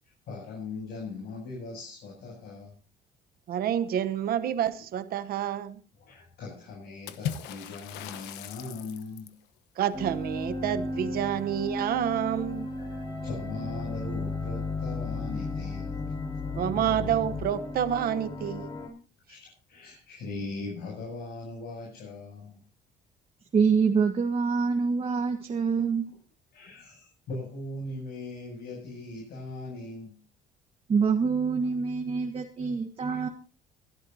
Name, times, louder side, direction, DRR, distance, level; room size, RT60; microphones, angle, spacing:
voice 1, 0.0-2.8 6.0-9.4 12.8-16.1 19.3-22.6 26.1-26.2 26.5-30.2 33.1-33.2, left 3 dB, 70° left, 7.9 m, -40 dB
voice 2, 3.5-5.8 9.8-12.7 16.5-18.7, right 10 dB, 60° right, 1.0 m, -28 dB
Water / Splash splatter, 7.1-9.4, left 9 dB, 90° left, 1.1 m, -38 dB
sound 1, 9.9-18.9, left 2 dB, 25° left, 5.2 m, -34 dB
voice 3, 23.5-26.1 30.9-33.3, right 5 dB, 35° right, 1.5 m, -25 dB
23.0 x 12.0 x 2.8 m
cardioid pair, 110°, 17 cm